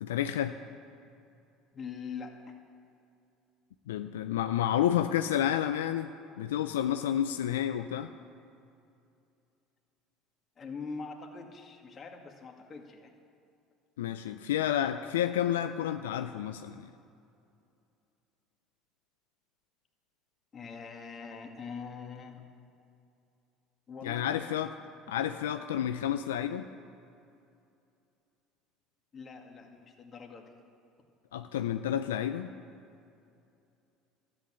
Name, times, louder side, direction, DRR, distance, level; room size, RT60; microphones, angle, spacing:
voice 1, 0.0-0.6 3.9-6.1 6.4-8.1 14.0-16.9 24.0-24.7 25.1-26.7 31.3-32.5, left 10 dB, 90° left, 8 dB, 0.4 m, -30 dB
voice 2, 1.7-2.5 10.6-13.1 20.5-22.4 23.9-24.5 25.1-25.2 29.1-30.5, left 5 dB, 35° left, 2 dB, 2.1 m, -43 dB
13.0 x 8.9 x 9.0 m, 2.6 s
hypercardioid pair, 75°, 0 cm